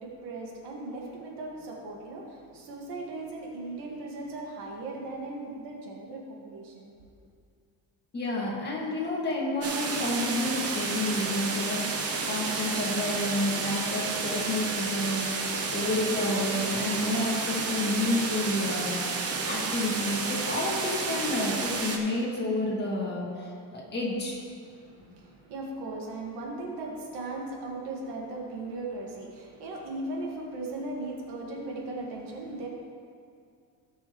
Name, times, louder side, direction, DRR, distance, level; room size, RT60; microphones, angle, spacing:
voice 1, 0.0-6.9 24.6-32.7, right 2 dB, 80° right, -1 dB, 2.0 m, -38 dB
voice 2, 8.1-11.9 12.3-15.3 15.7-19.0 19.4-24.4, left 2 dB, 25° left, -5 dB, 2.2 m, -30 dB
sound 1, 9.6-22.0, right 4 dB, 35° right, 1.0 m, -31 dB
16.5 x 6.3 x 3.2 m, 2.3 s
cardioid pair, 155°, 40 cm